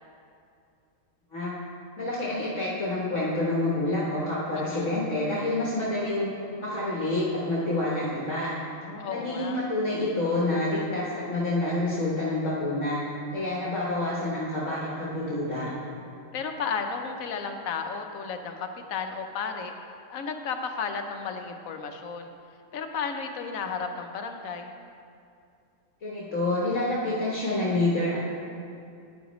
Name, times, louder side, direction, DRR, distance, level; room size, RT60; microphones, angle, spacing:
voice 1, 2.0-6.3 6.6-8.5 9.1-13.0 13.3-15.7 26.0-28.2, left 2 dB, 65° left, -6 dB, 1.6 m, -28 dB
voice 2, 4.5-4.9 8.8-9.6 16.3-19.7 20.1-22.3 22.7-24.7, left 5 dB, 85° left, 5 dB, 1.2 m, -33 dB
10.0 x 9.6 x 3.1 m, 2.5 s
omnidirectional pair, 1.4 m